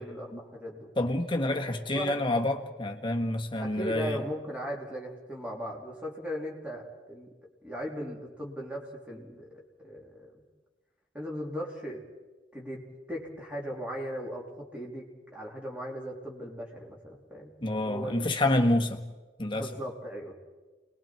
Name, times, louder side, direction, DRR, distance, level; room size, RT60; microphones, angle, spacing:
voice 1, 0.0-0.9 1.5-1.7 1.9-2.2 3.6-7.3 7.6-10.3 11.1-12.0 12.5-18.8 19.5-20.3, equal, 5° right, -2 dB, 3.4 m, -38 dB
voice 2, 1.0-4.2 17.6-19.0 19.4-19.7, left 1 dB, 25° left, 4 dB, 1.5 m, -28 dB
28.0 x 21.0 x 4.6 m, 1.2 s
head